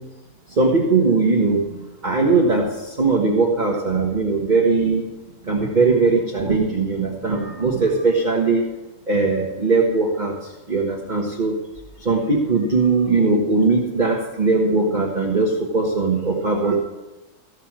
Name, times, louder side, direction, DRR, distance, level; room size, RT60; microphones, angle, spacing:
voice 1, 0.6-1.6 2.0-2.7 3.0-5.0 5.5-8.6 9.1-10.3 10.7-11.5 12.0-16.8, right 3 dB, 30° right, -1 dB, 1.3 m, -19 dB
14.5 x 6.4 x 7.4 m, 1.0 s
omnidirectional pair, 1.6 m